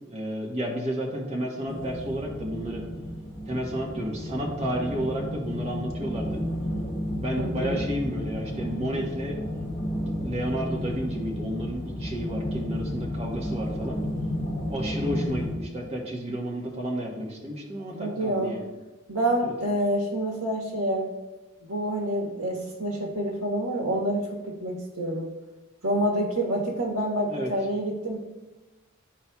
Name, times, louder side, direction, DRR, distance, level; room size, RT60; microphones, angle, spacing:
voice 1, 0.1-2.8 3.5-6.4 7.2-9.4 9.9-14.0 14.7-18.7 19.4-19.5 27.3-27.5, equal, 30° right, -2 dB, 1.2 m, -31 dB
sound 1, 1.7-15.5, equal, 30° left, 2.2 m, -32 dB
voice 2, 7.4-7.8 17.9-18.5 19.1-21.1 21.7-25.3 25.8-28.2, right 1 dB, 85° right, 0 dB, 1.4 m, -27 dB
12.0 x 4.3 x 2.3 m, 1.1 s
head